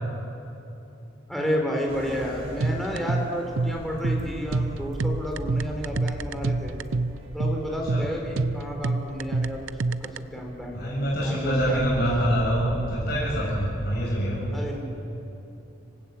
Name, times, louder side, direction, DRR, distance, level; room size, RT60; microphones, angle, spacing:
voice 1, 1.3-6.8 7.3-9.7 10.0-12.0 14.5-14.8, equal, ahead, 0 dB, 4.1 m, -31 dB
sound 1, 1.9-14.2, equal, 30° right, 4.1 m, -38 dB
sound 2, 2.6-10.2, right 3 dB, 85° right, 0.7 m, -27 dB
voice 2, 10.7-14.5, equal, 50° left, -6 dB, 7.1 m, -25 dB
26.5 x 19.5 x 8.6 m, 2.9 s
head